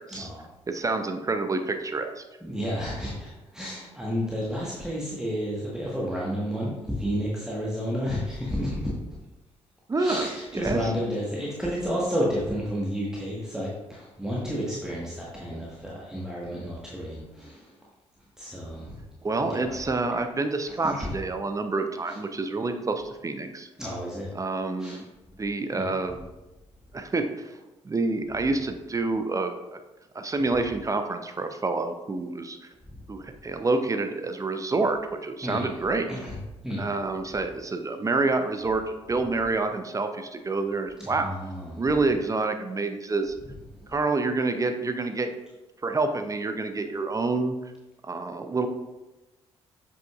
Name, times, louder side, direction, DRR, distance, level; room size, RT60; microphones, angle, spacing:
voice 1, 0.1-0.5 2.4-8.9 10.0-17.7 18.4-19.0 19.4-19.7 20.8-21.1 22.1-22.2 23.8-24.3 24.8-25.0 25.7-26.0 35.4-35.7 36.1-36.4 36.6-36.9 41.0-41.8, equal, 5° right, -6 dB, 1.4 m, -31 dB
voice 2, 0.7-2.2 9.9-10.9 19.2-23.7 24.3-25.0 25.4-26.2 26.9-27.5 27.8-29.8 30.1-32.6 33.1-36.1 36.8-41.3 41.8-43.3 43.9-45.3 45.8-47.5 48.0-48.7, right 3 dB, 20° right, 7 dB, 0.6 m, -28 dB
7.6 x 5.5 x 2.4 m, 1.1 s
figure-of-eight pair, 40°, 15 cm